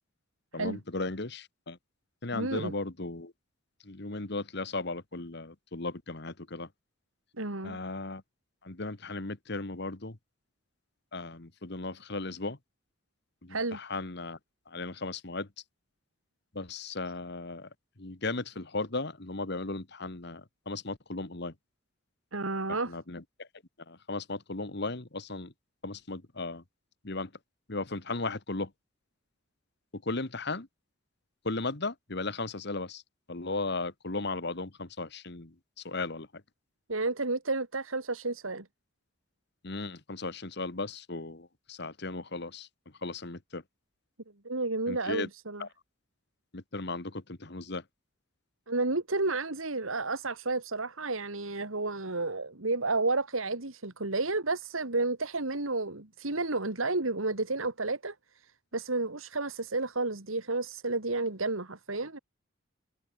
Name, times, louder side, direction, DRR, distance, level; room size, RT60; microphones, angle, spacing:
voice 1, 0.5-1.8 2.2-3.3 3.8-6.7 7.6-8.2 8.6-10.2 11.1-12.6 13.4-14.4 14.7-15.5 16.5-17.7 18.0-21.5 22.7-23.5 23.9-25.5 25.8-26.6 27.0-27.3 27.7-28.7 29.9-30.7 31.4-33.0 33.3-35.5 35.8-36.4 39.6-42.7 43.0-43.6 44.9-45.3 45.6-45.7 46.5-47.8, left 3 dB, 55° left, 1.7 m, -36 dB
voice 2, 2.3-2.7 7.4-7.8 13.5-13.8 22.3-22.9 36.9-38.7 44.4-45.6 48.7-62.2, right 3 dB, 85° right, 2.7 m, -31 dB
head